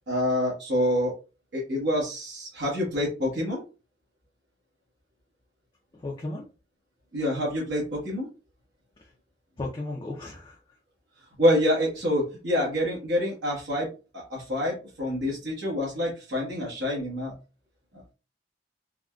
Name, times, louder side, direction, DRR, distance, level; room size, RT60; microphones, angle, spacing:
voice 1, 0.1-1.1 1.5-3.6 7.1-8.3 11.4-13.9 14.1-17.3, left 1 dB, 75° right, 1.2 m, -27 dB
voice 2, 5.9-6.5 9.0-9.1 9.6-10.8, left 2 dB, 25° left, 0.5 m, -36 dB
3.6 x 2.2 x 2.3 m
head